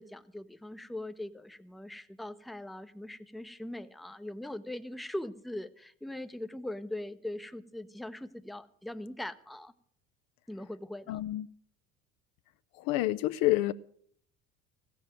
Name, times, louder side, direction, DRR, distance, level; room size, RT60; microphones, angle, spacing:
voice 1, 0.0-9.7 10.5-11.2, left 1 dB, ahead, 0.8 m, -41 dB
voice 2, 11.1-11.5 12.8-13.7, left 17 dB, 55° left, 0.6 m, -28 dB
15.5 x 7.0 x 8.9 m
hypercardioid pair, 65°, 42 cm